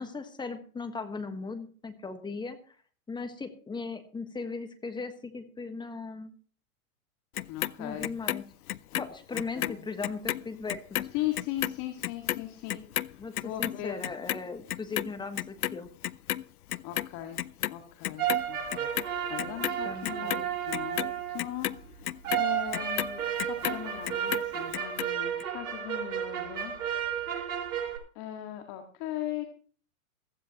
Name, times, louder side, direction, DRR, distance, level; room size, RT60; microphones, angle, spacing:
voice 1, 0.0-2.6 3.1-6.3 7.8-8.4 9.0-11.1 13.2-13.3 13.6-15.9 19.8-20.5, left 4 dB, 10° left, 8 dB, 1.4 m, -38 dB
Clock, 7.4-9.8 10.0-16.4 16.7-17.8 18.0-19.1 19.4-23.8 24.1-25.1 25.4-25.5, left 13 dB, 85° left, 0.6 m, -32 dB
voice 2, 7.5-8.1 9.6-9.8 11.1-14.0 16.8-17.4 17.7-22.0 22.3-26.7 28.2-29.4, left 13 dB, 40° left, 4 dB, 2.0 m, -38 dB
sound 1, 18.2-21.5 22.2-28.0, right 9 dB, 70° right, 5.5 m, -32 dB
16.0 x 14.5 x 3.0 m, 0.43 s
hypercardioid pair, 120°, 43 cm